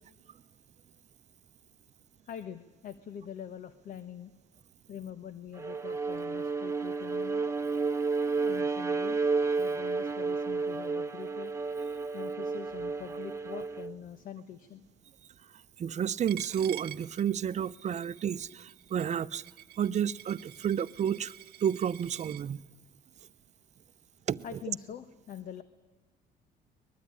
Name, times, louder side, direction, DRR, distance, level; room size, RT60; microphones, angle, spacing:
voice 1, 2.3-4.3 4.9-7.5 8.4-9.3 9.6-11.5 12.1-14.8 24.4-25.6, left 9 dB, 55° left, 1.3 m, -44 dB
Bowed string instrument, 5.6-14.0, right 4 dB, 15° right, 1.0 m, -31 dB
voice 2, 15.8-19.4 19.8-21.3 21.6-22.6 24.3-24.4, right 8 dB, 45° right, 0.8 m, -31 dB
Coin (dropping), 16.3-22.4, right 15 dB, 70° right, 1.2 m, -48 dB
23.0 x 21.0 x 9.9 m
cardioid pair, 110°, 17 cm